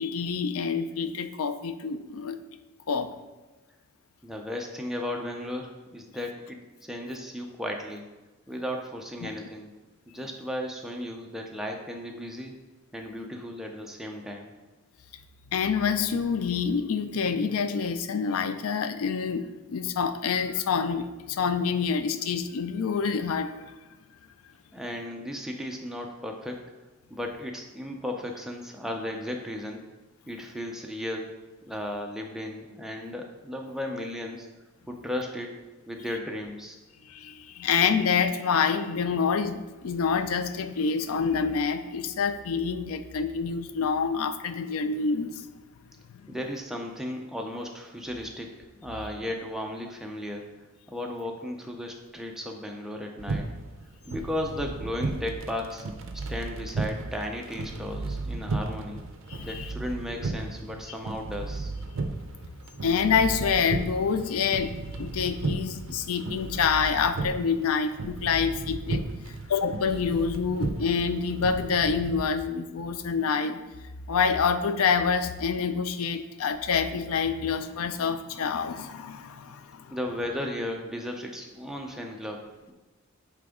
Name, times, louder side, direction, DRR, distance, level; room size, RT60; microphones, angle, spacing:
voice 1, 0.0-2.4 2.9-3.1 9.2-9.3 15.5-23.7 37.1-45.5 59.3-59.7 62.8-73.6 74.1-79.9, left 6 dB, 85° left, 11 dB, 0.4 m, -27 dB
voice 2, 4.2-8.0 8.5-9.7 10.1-12.5 12.9-14.5 24.7-26.6 27.1-29.8 30.3-31.3 31.7-34.5 34.9-35.5 35.9-36.8 46.3-48.5 48.8-50.5 50.9-53.5 54.1-55.8 56.3-59.0 59.4-61.7 79.9-82.7, left 1 dB, ahead, 1 dB, 0.5 m, -35 dB
sound 1, 53.2-72.2, right 3 dB, 65° right, 0.5 m, -35 dB
8.8 x 3.4 x 3.6 m, 1.2 s
head